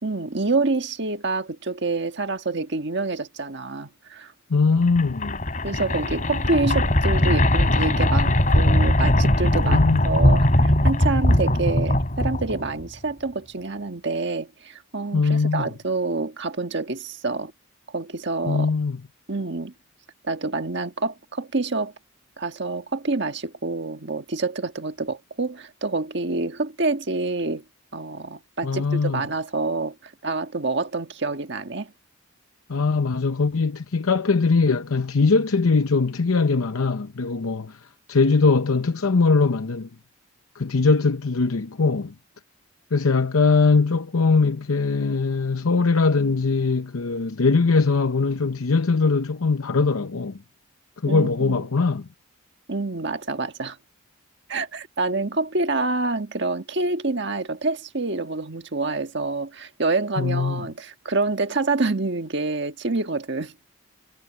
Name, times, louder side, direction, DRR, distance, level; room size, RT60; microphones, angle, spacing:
voice 1, 0.0-4.3 5.6-17.5 17.9-18.7 19.3-19.7 20.3-21.9 22.4-27.6 27.9-31.9 51.1-51.6 52.7-53.8 54.5-63.5, right 3 dB, 55° right, 1.5 m, -27 dB
voice 2, 4.5-5.4 9.6-10.0 15.1-15.7 18.4-19.0 28.6-29.2 32.7-37.8 38.1-39.9 40.5-42.1 42.9-50.4 51.0-52.1 60.2-60.7, left 4 dB, 85° left, 0.8 m, -21 dB
sound 1, 4.8-12.9, left 1 dB, 35° left, 3.6 m, -20 dB
head